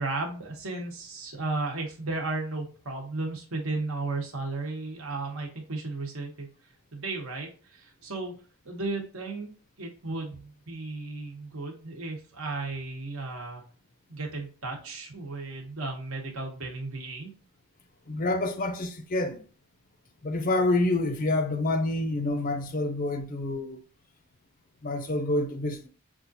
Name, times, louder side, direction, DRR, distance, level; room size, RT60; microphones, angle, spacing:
voice 1, 0.0-6.5 6.9-8.3 8.6-9.5 9.8-13.6 14.1-17.3, right 3 dB, 65° right, 1.0 m, -34 dB
voice 2, 18.1-19.4 20.2-23.8 24.8-25.9, left 2 dB, 40° left, 0.5 m, -27 dB
5.5 x 2.4 x 2.7 m
head